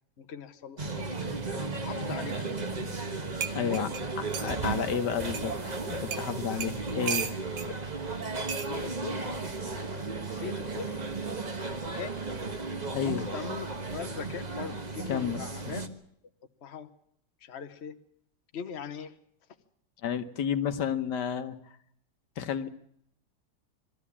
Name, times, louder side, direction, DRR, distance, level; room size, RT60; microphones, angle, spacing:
voice 1, 0.2-1.4 1.8-2.6 3.5-4.0 7.7-7.8 8.4-9.3 9.6-11.0 11.5-12.2 13.0-15.9 16.6-16.9 17.4-18.0 18.5-19.2, left 6 dB, 45° left, 7 dB, 1.2 m, -41 dB
sound 1, 0.8-15.9, right 3 dB, 25° right, 1.3 m, -35 dB
sound 2, 3.4-4.6 5.3-5.5 6.1-6.3 6.6-7.7 8.5-8.7 9.8-10.1, right 7 dB, 75° right, 1.7 m, -35 dB
voice 2, 3.5-3.9 4.2-5.6 5.8-7.3 12.9-13.2 15.1-15.7 20.0-21.5 22.4-22.7, left 7 dB, 80° left, 8 dB, 1.6 m, -31 dB
22.5 x 13.5 x 8.5 m, 0.72 s
omnidirectional pair, 1.8 m